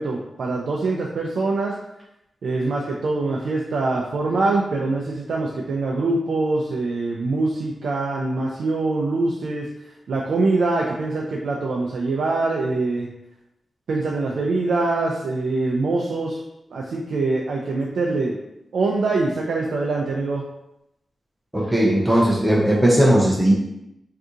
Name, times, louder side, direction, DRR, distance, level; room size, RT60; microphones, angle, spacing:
voice 1, 0.0-1.8 2.4-9.7 10.1-13.1 13.9-16.4 16.7-18.4 18.7-20.4, right 3 dB, 75° right, -2 dB, 0.4 m, -24 dB
voice 2, 21.5-23.5, right 1 dB, 5° right, -4 dB, 0.4 m, -17 dB
2.7 x 2.5 x 3.6 m, 0.85 s
wide cardioid pair, 180°, 0 cm